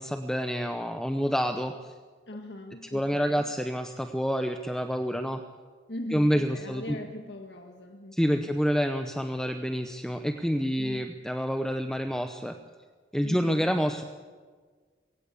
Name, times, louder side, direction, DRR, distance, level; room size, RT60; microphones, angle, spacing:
voice 1, 0.0-1.9 2.9-5.4 6.1-7.0 8.1-12.6 13.1-14.0, equal, 5° left, 6 dB, 0.7 m, -28 dB
voice 2, 2.3-3.5 5.9-8.5 10.8-11.0 13.2-13.7, left 1 dB, 80° left, 3 dB, 1.7 m, -40 dB
22.5 x 16.5 x 8.4 m, 1.5 s
head